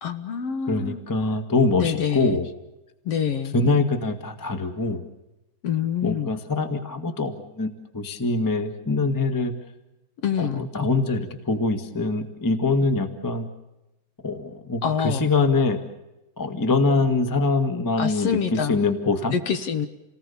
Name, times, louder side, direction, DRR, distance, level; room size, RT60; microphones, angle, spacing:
voice 1, 0.0-1.0 1.8-2.4 3.1-3.5 5.6-6.3 10.2-10.7 14.8-15.2 18.0-18.8 19.3-19.9, left 7 dB, 60° left, 9 dB, 2.1 m, -26 dB
voice 2, 0.7-2.4 3.5-5.0 6.0-9.5 10.4-13.4 14.2-15.8 16.4-19.3, left 3 dB, 10° left, 7 dB, 0.9 m, -24 dB
29.0 x 19.0 x 7.0 m, 0.97 s
omnidirectional pair, 3.4 m